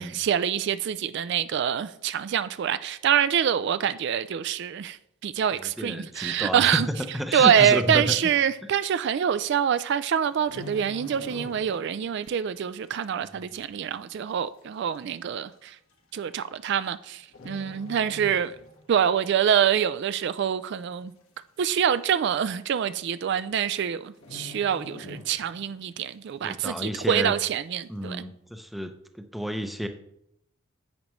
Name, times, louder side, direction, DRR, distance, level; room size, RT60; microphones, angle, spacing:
voice 1, 0.0-6.9 7.3-15.8 16.1-18.5 18.9-21.1 21.6-28.2, right 8 dB, 55° right, 0.3 m, -25 dB
voice 2, 5.6-8.2 26.4-27.3 27.9-29.9, equal, ahead, 0.6 m, -31 dB
sound 1, 10.2-12.0 12.2-12.5 13.1-13.2 14.1-14.2 14.4-14.5 15.3-15.5 16.6-17.0 17.3-18.9 19.2-19.5 19.9-20.5 20.8-20.9 21.1-21.2 21.7-21.8 22.7-22.8 23.1-23.4 23.7-23.8 24.2-25.8 26.2-26.3, left 3 dB, 80° left, 1.4 m, -44 dB
10.0 x 8.4 x 3.1 m
head